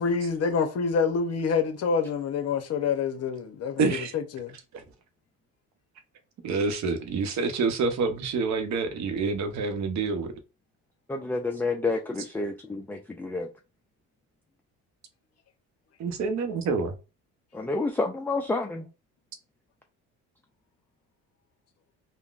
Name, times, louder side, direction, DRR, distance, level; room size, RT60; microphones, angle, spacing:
voice 1, 0.0-4.5, left 5 dB, 50° left, 0.8 m, -27 dB
voice 2, 3.8-4.1 4.7-4.8 6.4-10.3 16.0-17.0, right 4 dB, 60° right, 0.7 m, -27 dB
voice 3, 11.1-13.5 17.5-18.9, left 3 dB, 5° left, 0.3 m, -29 dB
3.7 x 2.1 x 2.4 m
cardioid pair, 95°, 32 cm